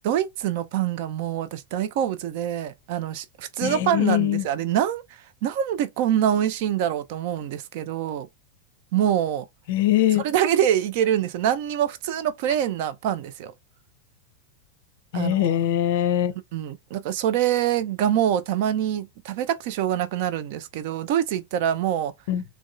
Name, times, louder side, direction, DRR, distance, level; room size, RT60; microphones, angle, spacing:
voice 1, 0.0-5.0 5.4-8.3 8.9-9.5 10.2-13.5 15.1-15.6 16.5-22.1, right 10 dB, 50° right, 0.4 m, -25 dB
voice 2, 3.6-4.5 9.7-10.2 15.1-16.3 22.3-22.4, left 12 dB, 50° left, 0.5 m, -22 dB
3.5 x 2.2 x 2.5 m
figure-of-eight pair, 90°, 0 cm